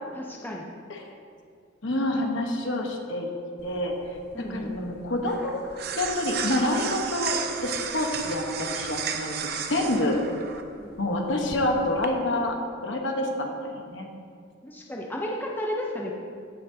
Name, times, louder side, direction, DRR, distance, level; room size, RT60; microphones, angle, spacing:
voice 1, 0.1-0.7 4.3-4.8 10.8-11.1 14.6-16.1, left 1 dB, 10° left, -1 dB, 0.6 m, -33 dB
voice 2, 1.8-3.3 3.6-3.9 4.5-5.6 6.0-9.3 9.7-10.2 11.0-12.6 12.8-14.1, left 1 dB, 65° left, 2 dB, 1.1 m, -27 dB
sound 1, 3.6-12.1, right 7 dB, 50° right, 0.6 m, -34 dB
16.0 x 6.3 x 2.8 m, 2.3 s
head